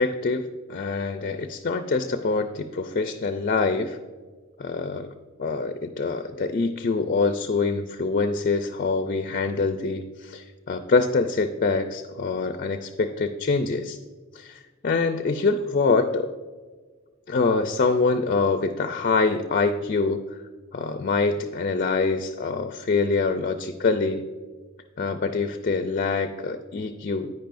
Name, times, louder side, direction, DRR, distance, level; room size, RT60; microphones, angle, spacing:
voice 1, 0.0-4.0 4.6-5.1 5.4-14.0 14.3-16.3 17.3-20.2 20.7-24.2 25.0-27.3, left 4 dB, 40° left, 8 dB, 0.4 m, -25 dB
10.0 x 9.5 x 2.5 m, 1.4 s
head